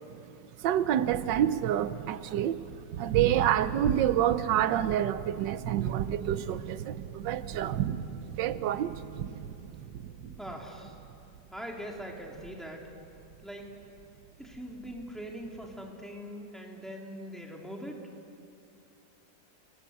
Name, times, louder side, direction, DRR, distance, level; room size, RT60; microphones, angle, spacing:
Thunder, 0.6-15.9, right 8 dB, 70° right, 1.4 m, -38 dB
voice 1, 0.6-7.8 8.4-9.0, right 11 dB, 90° right, 1.4 m, -28 dB
voice 2, 10.4-11.0 11.5-12.8 13.4-13.6 14.4-18.0, equal, ahead, 3.1 m, -42 dB
29.5 x 18.5 x 8.2 m
omnidirectional pair, 1.9 m